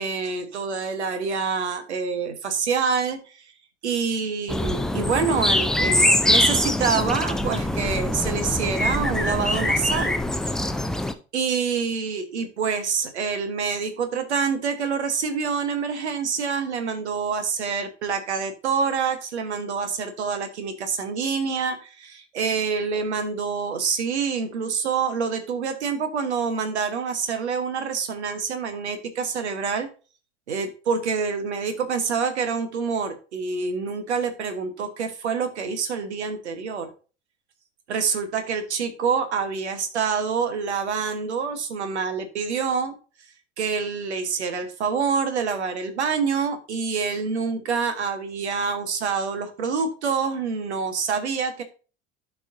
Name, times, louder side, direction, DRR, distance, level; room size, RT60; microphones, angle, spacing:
voice 1, 0.0-3.2 3.8-10.1 11.3-29.9 30.5-36.9 37.9-42.9 43.6-51.6, right 5 dB, 70° right, 9 dB, 1.3 m, -26 dB
sound 1, 4.5-11.1, left 1 dB, ahead, 0.3 m, -23 dB
12.0 x 4.7 x 2.6 m, 0.34 s
figure-of-eight pair, 70°, 35 cm